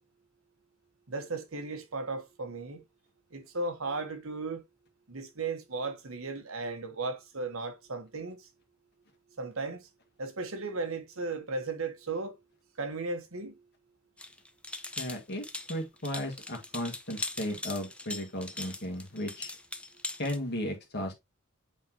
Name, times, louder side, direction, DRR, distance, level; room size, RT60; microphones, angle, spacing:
voice 1, 1.1-2.8 3.3-4.6 5.1-8.4 9.4-9.8 10.2-12.3 12.8-13.6, right 3 dB, 80° right, 1.4 m, -35 dB
sound 1, 14.2-20.4, left 2 dB, 5° left, 0.7 m, -40 dB
voice 2, 15.0-15.4 15.7-19.5 20.2-21.1, left 1 dB, 55° left, 1.9 m, -35 dB
8.1 x 4.0 x 3.0 m
head